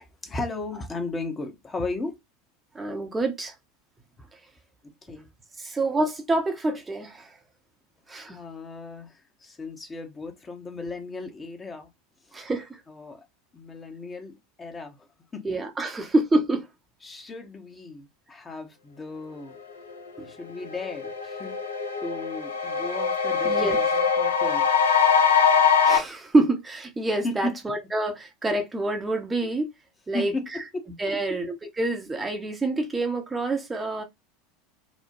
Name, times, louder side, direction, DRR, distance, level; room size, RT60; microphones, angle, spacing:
voice 1, 0.0-2.2 4.8-5.3 8.3-11.9 12.3-12.4 12.9-13.2 13.5-15.4 17.0-19.6 20.2-21.6 22.0-24.7 27.2-27.5 30.1-30.6 31.1-31.2, left 2 dB, 20° left, 0.7 m, -35 dB
voice 2, 2.7-3.5 5.6-7.3 8.1-8.4 12.3-12.7 15.4-16.7 20.2-20.3 23.4-23.8 25.8-29.7 30.1-30.3 31.0-34.0, right 2 dB, 15° right, 0.6 m, -26 dB
sound 1, 20.2-20.3 20.6-26.0, left 6 dB, 80° left, 0.5 m, -22 dB
3.0 x 2.1 x 2.5 m
figure-of-eight pair, 80°, 0 cm